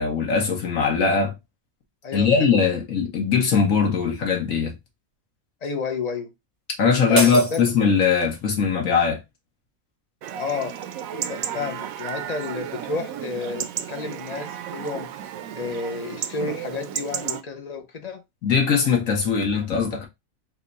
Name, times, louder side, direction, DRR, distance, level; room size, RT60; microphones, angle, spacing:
voice 1, 0.0-1.3 2.1-4.7 6.8-9.2 11.1-11.2 18.4-20.0, left 5 dB, 75° left, 1.6 m, -20 dB
voice 2, 2.0-2.6 5.6-6.3 7.1-7.6 10.4-10.8 11.3-15.1 15.5-18.2, left 5 dB, 45° left, 0.5 m, -31 dB
sound 1, 7.1-8.4, right 2 dB, 25° right, 0.5 m, -30 dB
Chatter / Livestock farm animals working animals / Chirp tweet, 10.2-17.4, right 10 dB, 80° right, 1.0 m, -33 dB
4.4 x 2.3 x 3.9 m
omnidirectional pair, 1.4 m